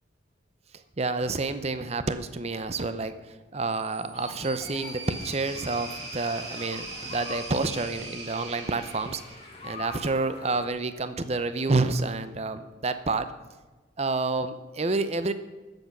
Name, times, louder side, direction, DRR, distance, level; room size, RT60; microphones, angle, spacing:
voice 1, 1.0-9.2 9.6-13.3 14.0-15.3, right 3 dB, 35° right, 11 dB, 0.6 m, -29 dB
sound 1, 3.7-9.9, right 3 dB, 60° right, 2.9 m, -41 dB
sound 2, 4.1-10.7, left 3 dB, 30° left, 1.3 m, -45 dB
13.0 x 8.0 x 6.1 m, 1.3 s
head